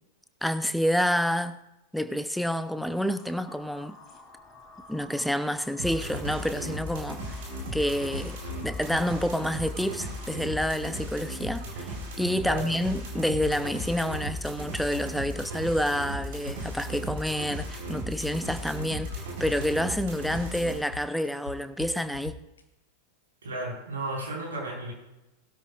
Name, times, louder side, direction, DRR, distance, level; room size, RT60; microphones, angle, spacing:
voice 1, 0.4-1.6 1.9-4.0 4.9-7.4 7.7-22.4, equal, ahead, 0.7 m, -28 dB
sound 1, 2.7-10.7, left 2 dB, 20° left, 3.0 m, -51 dB
sound 2, 5.8-20.8, right 1 dB, 55° right, 4.0 m, -36 dB
sound 3, 6.1-6.6 6.9-7.3 7.6-9.3 12.2-12.6 12.9-14.6 14.9-15.3 15.6-17.3 17.6-17.9 18.2-20.0 20.3-20.6 20.9-22.6, left 5 dB, 70° left, 1.1 m, -41 dB
voice 2, 12.4-12.7 23.4-24.9, right 2 dB, 70° right, 4.8 m, -34 dB
19.5 x 12.5 x 2.5 m
figure-of-eight pair, 90°, 0 cm